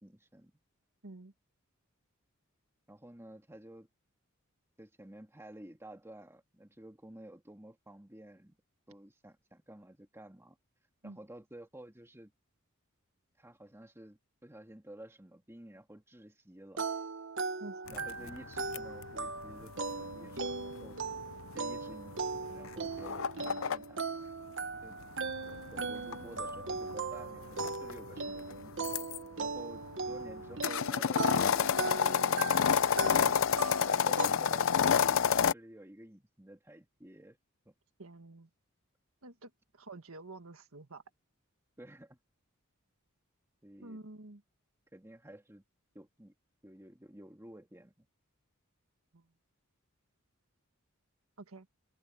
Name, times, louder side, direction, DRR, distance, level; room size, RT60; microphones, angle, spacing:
voice 1, 0.0-0.5 2.9-3.9 4.8-8.6 8.9-10.6 11.0-12.3 13.4-16.9 17.9-21.0 21.5-24.0 24.8-25.0 25.5-28.8 29.4-32.3 33.1-33.4 33.9-37.4 37.7-37.8 41.8-42.2 43.6-44.0 44.9-45.6 45.9-46.3 46.6-48.1, right 1 dB, 10° right, 2.1 m, -52 dB
sound 1, 16.8-34.3, right 4 dB, 60° right, 1.3 m, -39 dB
sound 2, 17.9-23.8 25.0-29.2 29.7-35.5, left 7 dB, 65° left, 0.5 m, -30 dB
voice 2, 33.1-33.5 38.0-38.5 39.2-41.0 43.8-44.4 49.1-49.3 51.4-51.7, right 2 dB, 75° right, 1.7 m, -49 dB
head